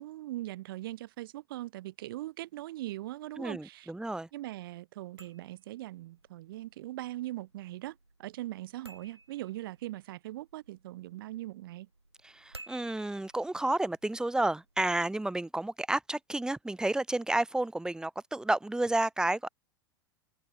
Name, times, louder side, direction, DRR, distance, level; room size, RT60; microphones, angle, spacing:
voice 1, 0.0-3.9 4.3-11.9, right 16 dB, 55° right, 1.7 m, -40 dB
voice 2, 3.4-4.3 12.2-19.5, right 2 dB, 5° right, 1.1 m, -31 dB
sound 1, 5.0-14.8, right 2 dB, 90° right, 1.7 m, -57 dB
figure-of-eight pair, 85°, 14 cm